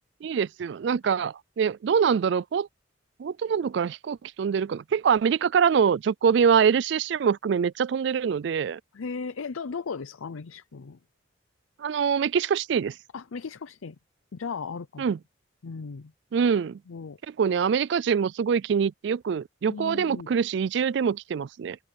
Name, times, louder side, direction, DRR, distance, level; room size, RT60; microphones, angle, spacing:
voice 1, 0.2-2.7 3.2-8.8 11.8-12.9 15.0-15.2 16.3-16.8 17.4-21.8, right 7 dB, 60° right, 0.3 m, -24 dB
voice 2, 8.9-11.0 13.1-14.0 14.3-15.2 15.6-16.1 16.9-17.2 19.7-20.3, left 5 dB, 85° left, 0.6 m, -36 dB
head